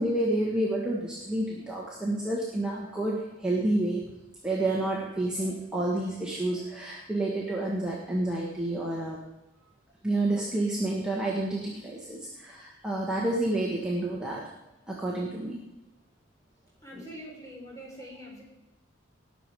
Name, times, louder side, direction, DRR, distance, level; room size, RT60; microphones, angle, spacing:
voice 1, 0.0-4.0 4.4-9.2 10.0-14.4 14.9-15.6, right 1 dB, 5° right, -5 dB, 1.7 m, -29 dB
voice 2, 16.8-18.4, equal, 15° left, -2 dB, 3.8 m, -44 dB
19.0 x 7.2 x 4.9 m, 0.96 s
head